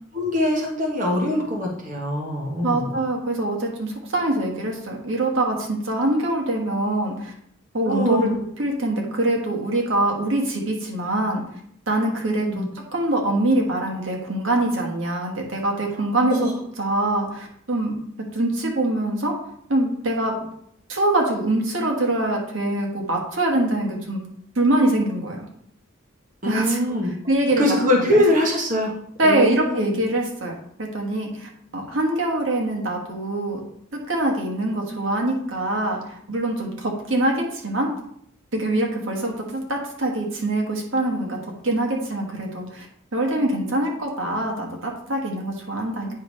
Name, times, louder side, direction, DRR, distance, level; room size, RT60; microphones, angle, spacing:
voice 1, 0.1-2.9 7.8-8.4 12.4-12.7 16.3-16.5 26.4-27.1 27.6-28.9 29.2-30.0, left 1 dB, 35° right, -2 dB, 1.2 m, -22 dB
voice 2, 2.6-7.3 7.7-8.3 8.6-11.4 11.9-16.5 16.8-17.9 18.3-19.3 19.7-20.3 20.9-24.2 24.5-25.4 26.4-27.0 27.3-28.0 29.2-30.5 30.8-33.6 33.9-37.9 38.5-41.4 41.6-42.9 43.1-46.1, right 1 dB, 65° right, 0 dB, 1.5 m, -24 dB
9.1 x 3.2 x 5.3 m, 0.70 s
head